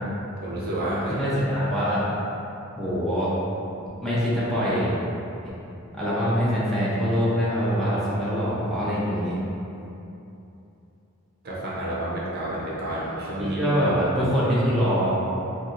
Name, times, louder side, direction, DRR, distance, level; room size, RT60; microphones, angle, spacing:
voice 1, 0.4-1.2 11.4-13.6, right 1 dB, 45° right, -6 dB, 0.6 m, -29 dB
voice 2, 1.2-2.0 2.8-3.3 4.0-5.0 5.4-5.5 5.9-9.4 13.4-15.1, equal, ahead, -10 dB, 0.6 m, -24 dB
4.3 x 2.5 x 2.4 m, 2.8 s
head